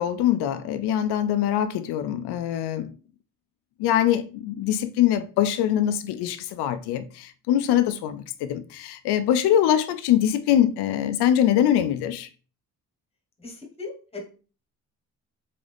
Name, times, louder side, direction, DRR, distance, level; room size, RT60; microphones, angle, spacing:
voice 1, 0.0-2.9 3.8-12.3, left 11 dB, 85° left, 0.6 m, -23 dB
voice 2, 13.4-14.2, left 3 dB, 15° left, 1.2 m, -38 dB
3.9 x 3.7 x 3.4 m
cardioid pair, 135°, 38 cm